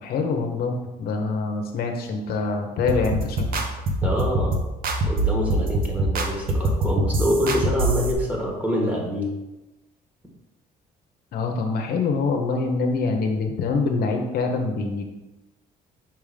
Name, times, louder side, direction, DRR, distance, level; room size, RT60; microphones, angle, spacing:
voice 1, 0.0-3.6 11.3-15.0, left 4 dB, 65° left, 3 dB, 0.9 m, -25 dB
sound 1, 2.9-8.1, right 1 dB, 60° right, 1.0 m, -24 dB
voice 2, 4.0-4.5 5.0-9.3, equal, 10° right, -1 dB, 1.7 m, -26 dB
5.7 x 3.5 x 5.1 m, 1.0 s
cardioid pair, 110°, 17 cm